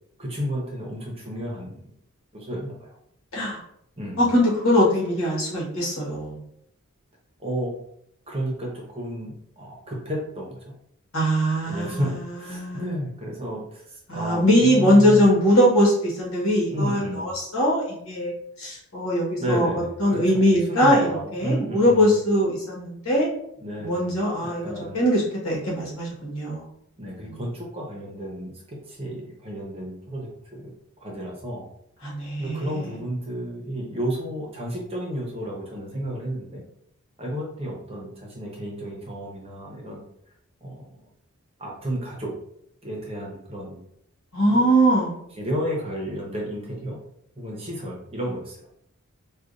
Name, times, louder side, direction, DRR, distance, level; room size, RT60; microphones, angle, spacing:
voice 1, 0.2-1.8 2.3-2.9 4.0-4.2 7.4-7.7 8.3-10.7 11.7-15.3 16.7-17.3 19.4-22.2 23.6-24.1 24.4-25.1 27.0-30.7 31.0-31.6 32.4-36.6 37.2-40.0 40.6-41.0 41.6-42.3 42.8-43.8 44.5-44.7 45.4-47.0 47.4-48.7, equal, 25° right, -2 dB, 0.8 m, -32 dB
voice 2, 4.2-6.4 11.1-12.8 14.1-18.3 18.6-19.7 20.0-21.0 21.3-23.3 23.8-26.6 27.3-27.4 32.0-33.0 44.3-45.2, equal, 70° left, -5 dB, 1.5 m, -21 dB
4.8 x 2.4 x 2.5 m, 0.73 s
head